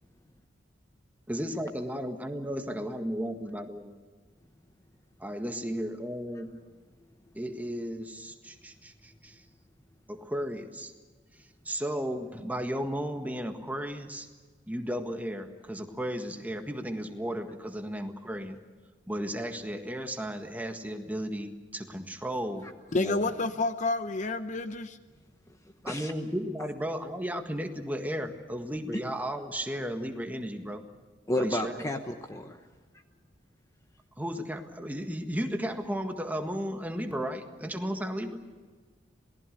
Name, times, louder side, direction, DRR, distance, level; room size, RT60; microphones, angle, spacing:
voice 1, 1.3-3.9 5.2-6.5 7.3-9.4 10.1-10.9 11.3-14.3 14.7-18.6 19.1-23.3 25.8-30.8 31.4-31.9 34.2-38.4, equal, 10° right, 1.7 m, -34 dB
voice 2, 22.9-25.0, left 3 dB, 40° left, 0.8 m, -29 dB
voice 3, 31.3-32.6, left 1 dB, 15° left, 1.0 m, -31 dB
27.5 x 19.0 x 6.6 m
head